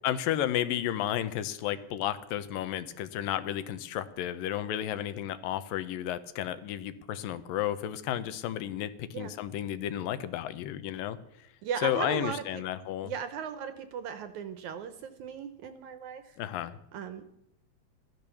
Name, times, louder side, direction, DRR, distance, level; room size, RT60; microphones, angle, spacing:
voice 1, 0.0-11.2 11.8-13.1 16.4-16.8, left 11 dB, 80° left, 13 dB, 2.5 m, -32 dB
voice 2, 11.6-12.6 13.0-16.4 16.9-17.3, right 7 dB, 70° right, 10 dB, 1.9 m, -37 dB
15.5 x 12.0 x 7.0 m, 0.77 s
omnidirectional pair, 4.1 m